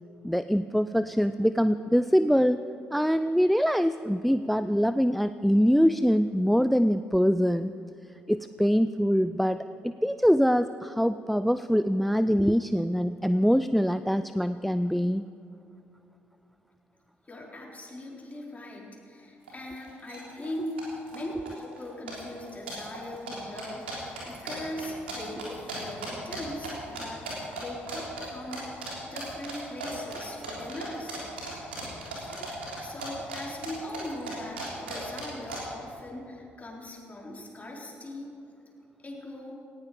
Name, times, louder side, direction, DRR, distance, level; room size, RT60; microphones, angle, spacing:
voice 1, 0.2-2.6 2.9-7.7 8.3-9.6 9.8-15.2, equal, ahead, 13 dB, 0.4 m, -24 dB
voice 2, 17.3-31.2 32.4-38.3 39.0-39.6, left 1 dB, 25° left, -2 dB, 4.2 m, -40 dB
sound 1, 19.5-19.6 19.8-20.2 20.4-21.2 21.5-21.8 22.1-26.7 26.9-27.6 27.9-28.3 28.5-28.9 29.2-33.4 33.6-35.6, right 3 dB, 85° right, 3.6 m, -37 dB
18.5 x 15.0 x 5.1 m, 2.6 s
figure-of-eight pair, 45°, 6 cm